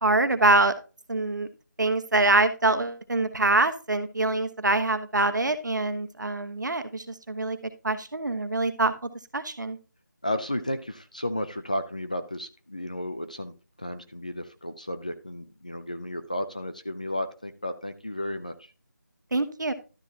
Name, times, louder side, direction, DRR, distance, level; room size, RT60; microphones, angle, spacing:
voice 1, 0.0-0.7 1.1-1.5 1.8-7.6 7.8-8.9 9.3-9.8 19.3-19.7, right 2 dB, 70° right, 9 dB, 1.3 m, -24 dB
voice 2, 10.2-18.6, left 1 dB, 25° left, 9 dB, 0.4 m, -33 dB
12.0 x 7.0 x 2.8 m, 0.33 s
figure-of-eight pair, 175°, 10 cm